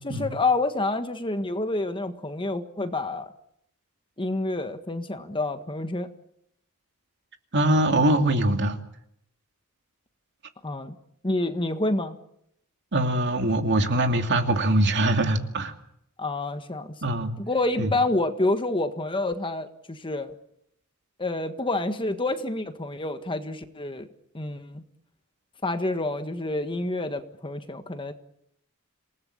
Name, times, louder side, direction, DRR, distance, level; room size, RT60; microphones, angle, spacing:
voice 1, 0.0-3.3 4.2-6.1 10.6-10.9 11.2-12.1 16.2-16.9 17.4-20.3 21.2-24.1 24.3-24.8 25.6-28.1, left 2 dB, 25° left, 8 dB, 1.5 m, -28 dB
voice 2, 7.5-8.8 12.9-15.7 17.0-17.3 17.8-17.9, right 1 dB, 55° right, 5 dB, 2.6 m, -22 dB
27.5 x 19.0 x 8.7 m, 0.76 s
head